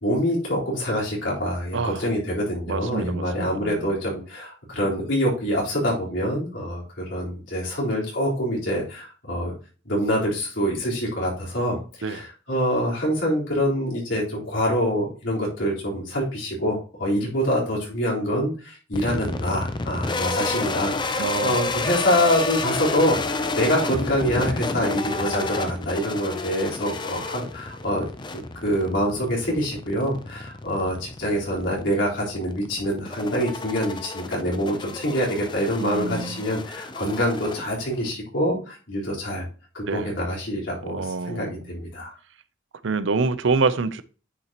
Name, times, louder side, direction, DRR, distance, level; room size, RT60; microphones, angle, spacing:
voice 1, 0.0-9.5 9.9-28.1 28.3-39.5 39.7-42.1, equal, 75° left, 3.9 m, -25 dB
voice 2, 1.7-2.1 2.7-3.9 12.0-12.2 21.2-21.7 35.8-36.5 39.9-40.1 40.9-41.6 42.8-44.0, right 4 dB, 80° right, 0.6 m, -26 dB
sound 1, 18.9-38.1, left 3 dB, 25° left, 0.6 m, -31 dB
9.5 x 5.7 x 2.9 m
head